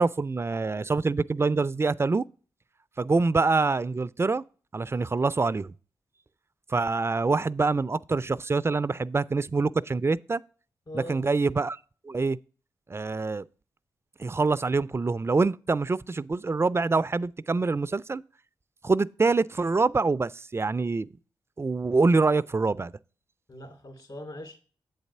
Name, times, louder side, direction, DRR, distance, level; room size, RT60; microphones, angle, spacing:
voice 1, 0.0-2.2 3.0-4.4 4.7-5.7 6.7-10.4 10.9-11.8 12.0-12.4 12.9-13.4 14.2-18.2 18.8-21.1 21.6-22.9, right 3 dB, 30° right, 0.3 m, -25 dB
voice 2, 10.9-11.2 23.5-24.6, left 1 dB, 50° left, 2.4 m, -41 dB
7.9 x 4.1 x 5.4 m
supercardioid pair, 40°, 9 cm